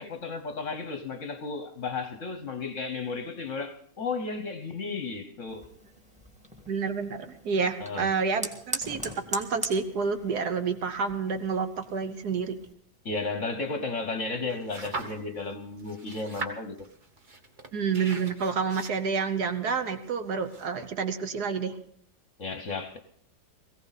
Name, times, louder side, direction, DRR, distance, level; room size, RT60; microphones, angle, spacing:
voice 1, 0.0-5.7 7.8-8.1 13.0-16.9 22.4-23.0, left 3 dB, 50° left, 1.2 m, -34 dB
Fire, 5.5-12.7, equal, 5° right, 1.5 m, -41 dB
voice 2, 6.7-12.5 17.7-21.7, right 5 dB, 60° right, 1.4 m, -29 dB
sound 1, 14.5-15.5 15.8-20.9, right 3 dB, 30° right, 1.2 m, -41 dB
18.5 x 16.5 x 4.1 m
omnidirectional pair, 2.0 m